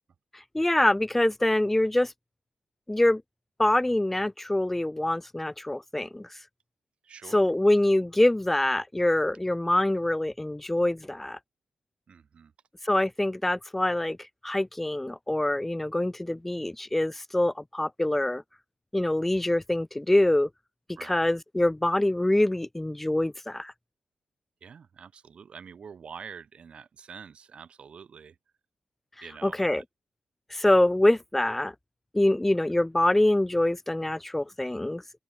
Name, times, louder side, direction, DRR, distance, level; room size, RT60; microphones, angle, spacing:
voice 1, 0.5-2.1 2.9-3.2 3.6-6.3 7.3-11.4 12.8-14.2 14.4-18.4 18.9-20.5 21.1-23.7 29.4-29.8 30.5-31.7 32.1-35.0, left 1 dB, 10° left, 0.4 m, -25 dB
voice 2, 7.0-7.5 12.1-12.5 21.0-21.2 24.6-28.4 29.2-29.8, right 6 dB, 55° right, 3.6 m, -46 dB
open air
wide cardioid pair, 150°, 2 cm